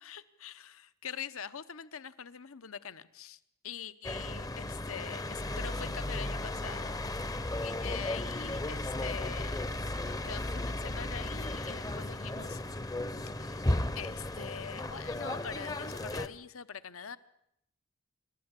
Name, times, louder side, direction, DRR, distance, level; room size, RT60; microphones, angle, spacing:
voice 1, 0.0-7.0 7.6-12.6 13.4-17.2, left 7 dB, 65° left, 14 dB, 0.9 m, -44 dB
sound 1, 4.0-16.3, left 1 dB, 15° left, 0.8 m, -35 dB
27.0 x 13.0 x 8.3 m, 0.79 s
head